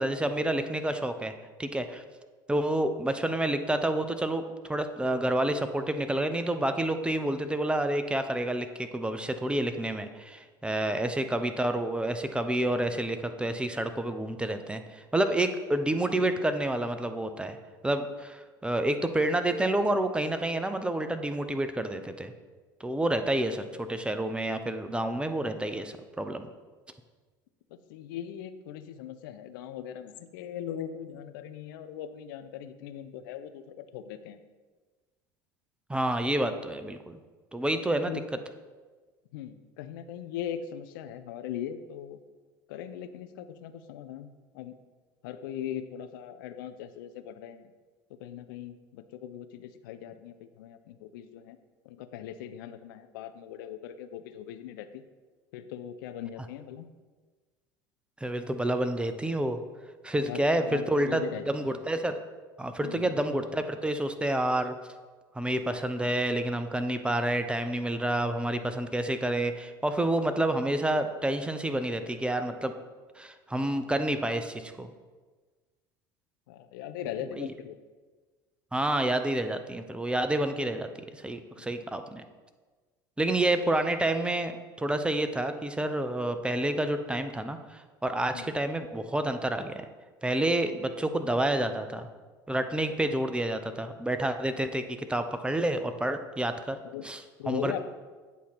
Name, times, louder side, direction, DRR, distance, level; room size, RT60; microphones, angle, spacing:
voice 1, 0.0-1.3 1.6-2.0 2.5-17.6 17.8-22.3 22.8-26.4 35.9-37.2 37.5-38.1 58.2-59.6 60.0-62.1 62.6-64.7 65.4-72.7 73.2-74.9 77.3-77.5 78.7-82.2 83.2-84.5 84.8-89.9 90.2-92.1 92.5-96.8 97.0-97.2 97.5-97.8, right 1 dB, 10° right, 8 dB, 0.5 m, -29 dB
voice 2, 27.7-34.4 37.9-38.2 39.3-42.2 42.7-44.7 45.2-47.7 48.2-51.6 51.8-55.0 55.5-56.9 60.2-61.6 62.8-63.2 76.5-77.8 81.6-81.7 88.3-88.5 96.8-97.1 97.4-97.8, left 10 dB, 70° left, 9 dB, 0.5 m, -40 dB
8.3 x 2.8 x 5.9 m, 1.4 s
hypercardioid pair, 75°, 11 cm